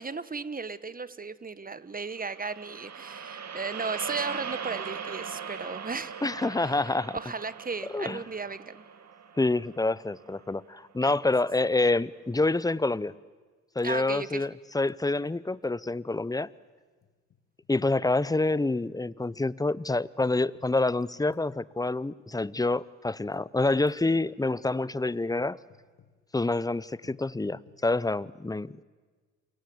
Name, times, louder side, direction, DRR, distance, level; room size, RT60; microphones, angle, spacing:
voice 1, 0.0-6.3 6.6-6.8 7.1-8.8 11.0-11.1 13.8-14.4, right 4 dB, 25° right, 15 dB, 1.4 m, -35 dB
sound 1, 2.2-10.5, right 6 dB, 50° right, 2.6 m, -40 dB
voice 2, 6.2-7.2 7.9-8.2 9.4-13.1 13.7-16.5 17.7-25.6 26.3-28.8, left 2 dB, 10° left, 20 dB, 0.8 m, -27 dB
sound 2, 15.3-15.4 15.6-15.7 16.6-17.7 18.4-19.4 20.2-21.6 22.3-22.6 23.3-23.6 23.9-24.2 24.6-24.9 25.4-26.2 27.0-27.9, left 7 dB, 50° left, 2.4 m, -60 dB
28.5 x 23.5 x 8.0 m, 1.4 s
hypercardioid pair, 55°, 34 cm